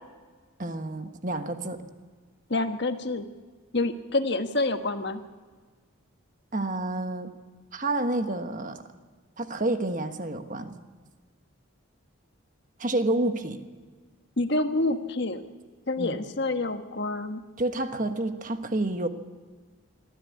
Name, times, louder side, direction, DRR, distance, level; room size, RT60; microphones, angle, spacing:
voice 1, 0.6-1.8 6.5-7.3 7.7-8.8 9.4-10.8 12.8-13.6 16.0-16.2 17.6-19.1, right 2 dB, 40° right, 8 dB, 1.3 m, -29 dB
voice 2, 2.5-3.3 3.7-5.2 14.4-15.4 15.9-17.4, left 2 dB, 55° left, 7 dB, 1.3 m, -27 dB
22.5 x 14.5 x 8.4 m, 1.5 s
head